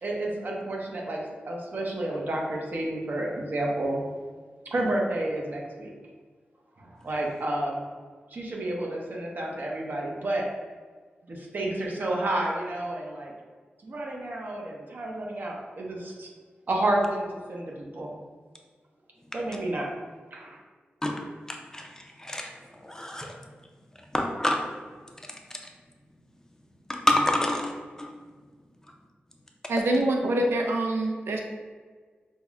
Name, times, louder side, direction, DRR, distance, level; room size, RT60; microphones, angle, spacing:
voice 1, 0.0-4.0 4.7-5.9 6.8-7.8 8.3-10.5 11.3-13.3 13.8-16.3 16.7-17.2 17.5-18.1 19.3-19.9 20.3-20.6, right 1 dB, 55° right, -1 dB, 0.7 m, -30 dB
voice 2, 21.5-22.5 22.8-23.4 24.1-24.6 26.9-28.1, left 1 dB, 15° left, 2 dB, 0.4 m, -27 dB
voice 3, 29.7-31.4, right 1 dB, 90° right, 2 dB, 0.4 m, -25 dB
5.3 x 2.1 x 2.3 m, 1.5 s
wide cardioid pair, 90°, 4 cm